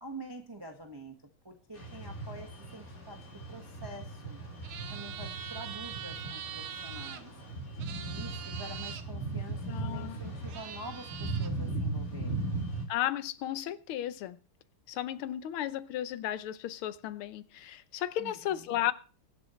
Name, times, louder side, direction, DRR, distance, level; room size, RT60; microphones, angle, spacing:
voice 1, 0.0-1.1 1.4-4.4 4.9-7.3 8.0-12.6 18.2-18.8, right 2 dB, 15° right, 1.2 m, -47 dB
sound 1, 1.7-12.9, right 2 dB, 40° left, 3.9 m, -38 dB
sound 2, 4.6-7.2 7.8-9.0 10.1-10.2 10.5-11.5, right 9 dB, 75° right, 1.8 m, -43 dB
voice 2, 9.7-10.2 12.9-14.4 14.9-18.9, left 12 dB, 80° left, 1.7 m, -34 dB
23.5 x 7.9 x 3.1 m
omnidirectional pair, 2.4 m